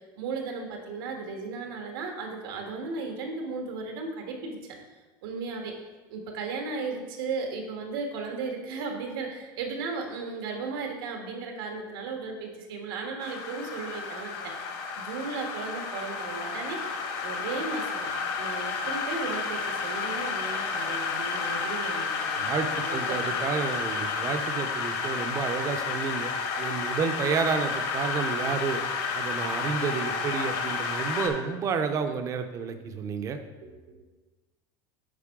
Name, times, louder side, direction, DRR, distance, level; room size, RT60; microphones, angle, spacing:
voice 1, 0.0-4.6 5.2-5.7 6.1-14.7 15.0-18.1 18.4-22.4 22.8-23.4 33.6-34.0, right 4 dB, 90° right, 2 dB, 1.5 m, -35 dB
sound 1, 13.2-31.3, left 4 dB, 50° left, 1.0 m, -31 dB
voice 2, 22.4-26.3 26.6-28.8 29.1-33.4, right 5 dB, 25° right, 8 dB, 0.5 m, -30 dB
8.4 x 5.3 x 3.6 m, 1.2 s
cardioid pair, 160°, 12 cm